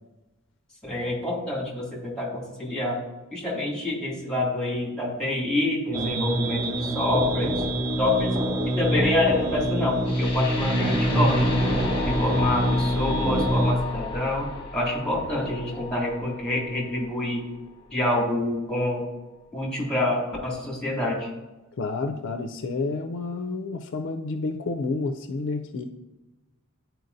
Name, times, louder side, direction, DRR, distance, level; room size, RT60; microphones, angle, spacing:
voice 1, 0.8-3.0 3.3-7.6 8.0-8.4 8.6-11.8 12.1-14.5 14.7-17.5 17.9-19.1 19.5-21.3, left 1 dB, 5° left, -3 dB, 2.1 m, -27 dB
sound 1, 5.9-13.7, right 1 dB, 15° right, 0.6 m, -25 dB
sound 2, 10.0-18.1, left 3 dB, 25° left, 1.0 m, -34 dB
voice 2, 21.8-25.8, left 3 dB, 60° left, 6 dB, 0.4 m, -30 dB
10.5 x 4.5 x 2.6 m, 1.1 s
head